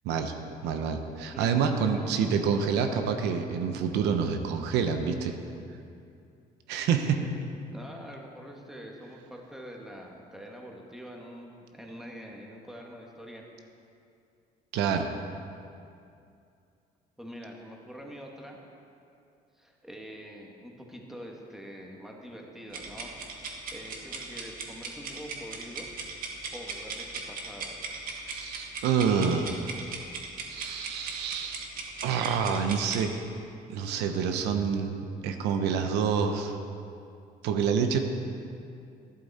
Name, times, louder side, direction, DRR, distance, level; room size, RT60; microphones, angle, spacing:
voice 1, 0.6-5.3 6.7-7.2 14.7-15.1 28.3-29.9 30.5-31.7 32.0-33.1 33.7-36.6 37.4-38.0, right 6 dB, 90° right, 6 dB, 0.9 m, -27 dB
voice 2, 1.3-2.3 7.0-7.3 7.7-13.4 17.2-18.6 19.5-23.2 23.7-25.9 26.5-27.8, equal, ahead, 0 dB, 1.6 m, -45 dB
sound 1, 22.7-33.1, right 4 dB, 60° right, 1.7 m, -38 dB
12.0 x 11.0 x 4.2 m, 2.5 s
cardioid pair, 110°, 17 cm